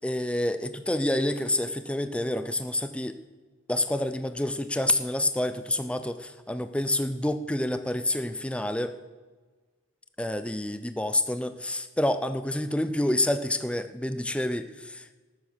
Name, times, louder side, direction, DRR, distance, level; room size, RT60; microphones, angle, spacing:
voice 1, 0.0-3.2 3.7-8.9 10.2-15.1, left 1 dB, 5° left, 10 dB, 0.5 m, -28 dB
12.5 x 9.6 x 6.2 m, 1.4 s
head